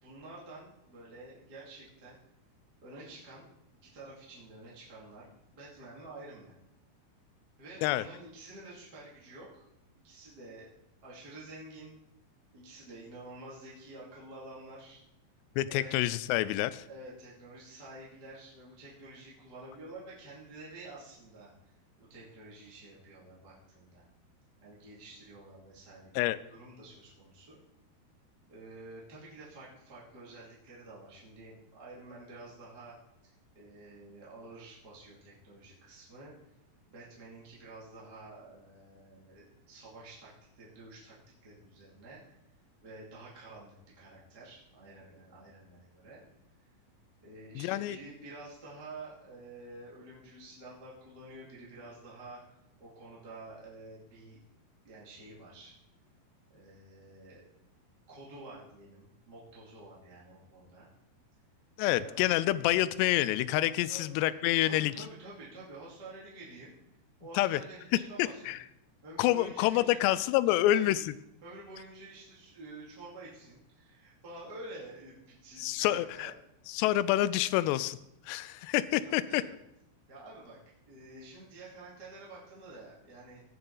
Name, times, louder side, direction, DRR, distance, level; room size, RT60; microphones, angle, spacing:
voice 1, 0.0-2.2 2.8-3.5 3.7-5.2 5.5-6.5 7.6-9.7 10.0-10.7 11.0-12.0 12.5-15.0 15.7-15.9 16.9-24.1 24.6-27.6 28.5-33.0 33.2-36.6 36.9-42.4 42.8-46.2 46.6-46.7 47.2-54.4 54.8-55.8 56.5-57.4 58.1-60.9 61.9-62.2 63.9-64.0 64.6-66.7 67.2-68.5 69.0-71.0 71.4-76.3 79.0-79.5 80.1-80.6 80.9-83.4, right 2 dB, 30° right, -7 dB, 2.4 m, -49 dB
voice 2, 15.6-16.8 26.2-26.4 47.6-48.0 61.8-64.9 67.4-67.6 68.2-68.6 69.2-71.0 75.6-76.3 76.7-78.0 78.3-79.4, left 15 dB, 90° left, 16 dB, 2.7 m, -27 dB
17.5 x 6.8 x 4.0 m, 0.83 s
omnidirectional pair, 4.8 m